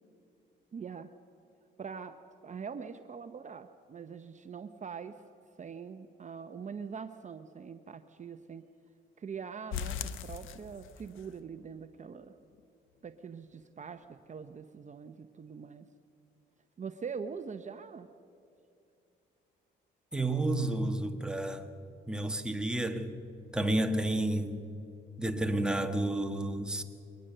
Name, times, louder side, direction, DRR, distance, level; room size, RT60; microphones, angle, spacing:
voice 1, 0.7-1.1 1.8-2.2 2.4-5.2 5.6-8.6 9.2-12.3 13.0-15.9 16.8-18.1, right 6 dB, 35° right, 0.8 m, -43 dB
sound 1, 9.7-11.2 11.6-11.7 12.1-12.2 12.6-12.7, left 8 dB, 85° left, 1.0 m, -39 dB
voice 2, 20.1-21.7 22.1-23.2 23.5-24.6 25.2-26.8, right 1 dB, 5° right, 1.5 m, -31 dB
22.5 x 19.0 x 6.7 m
cardioid pair, 90°, 20 cm